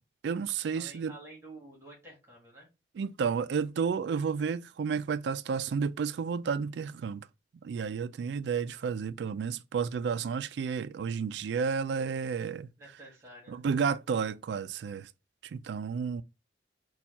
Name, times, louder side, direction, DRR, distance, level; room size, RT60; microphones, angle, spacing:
voice 1, 0.2-1.1 3.0-7.3 7.6-12.7 13.5-15.1 15.4-16.2, right 6 dB, 65° right, 0.3 m, -31 dB
voice 2, 0.7-2.7 12.8-13.7, right 2 dB, 15° right, 1.4 m, -50 dB
4.3 x 2.3 x 4.0 m
head